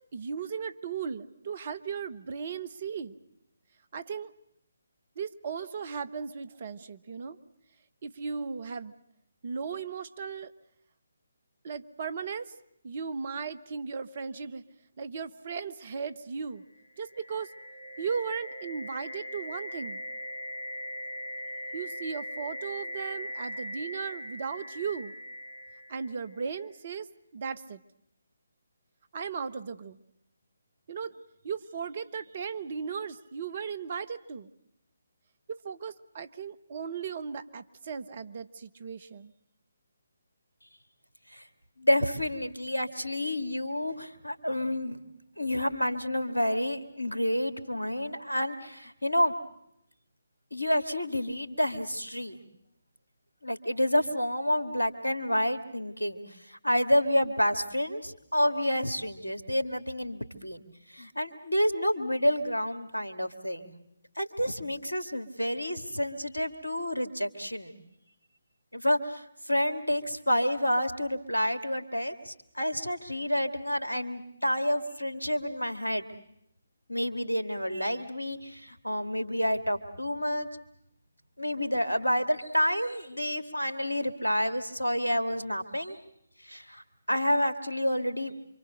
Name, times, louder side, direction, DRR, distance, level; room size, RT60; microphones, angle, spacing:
voice 1, 0.1-3.1 3.9-4.3 5.2-7.4 8.0-8.9 9.4-10.5 11.6-12.5 12.8-14.6 15.0-16.6 17.0-17.5 18.0-20.0 21.7-25.1 25.9-27.1 27.3-27.8 29.1-30.0 30.9-31.2 31.4-34.5 35.5-39.3, right 6 dB, 45° right, 13 dB, 1.2 m, -36 dB
sound 1, 16.8-26.6, equal, 60° left, 2.4 m, -40 dB
voice 2, 41.8-45.0 45.4-49.3 50.5-52.4 53.4-56.2 56.5-60.6 60.9-63.7 64.2-67.8 68.7-76.1 76.9-80.5 81.4-86.0 86.4-88.3, equal, 85° left, 8 dB, 2.5 m, -29 dB
28.0 x 25.0 x 6.6 m, 0.78 s
figure-of-eight pair, 145°, 0 cm